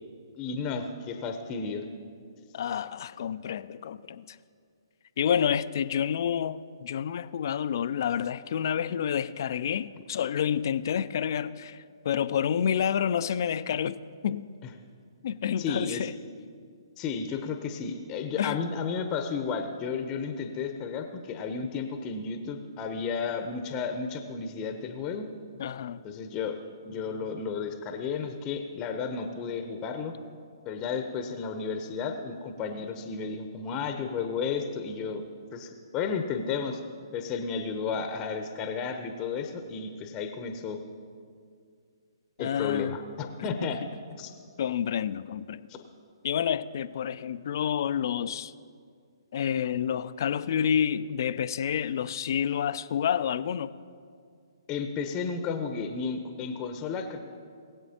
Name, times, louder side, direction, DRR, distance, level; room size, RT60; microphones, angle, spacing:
voice 1, 0.4-1.8 15.6-16.1 17.0-25.3 26.0-26.6 26.8-30.1 30.6-35.2 35.5-36.8 37.1-40.8 42.4-43.8 44.2-44.3 45.7-45.8 54.7-57.2, left 5 dB, 25° left, 0.8 m, -33 dB
voice 2, 2.5-4.3 5.2-14.0 14.2-14.5 15.2-16.1 18.4-18.6 25.6-26.0 42.4-43.0 43.6-43.7 44.6-45.7 46.2-48.5 49.3-53.7, left 8 dB, 50° left, 0.4 m, -29 dB
21.0 x 7.8 x 2.9 m
figure-of-eight pair, 130°, 2 cm